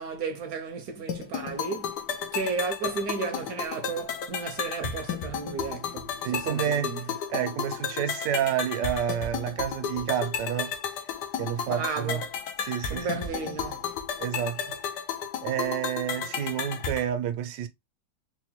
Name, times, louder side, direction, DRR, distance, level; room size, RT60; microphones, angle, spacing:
voice 1, 0.0-2.0 2.3-7.1 11.7-12.3 12.9-13.9, right 5 dB, 70° right, 1.0 m, -34 dB
sound 1, 1.1-17.1, left 7 dB, 80° left, 1.2 m, -33 dB
voice 2, 6.2-6.9 7.3-10.7 11.4-12.2 12.6-13.1 14.2-14.6 15.4-17.7, right 9 dB, 85° right, 1.2 m, -29 dB
4.1 x 2.2 x 2.9 m
omnidirectional pair, 1.9 m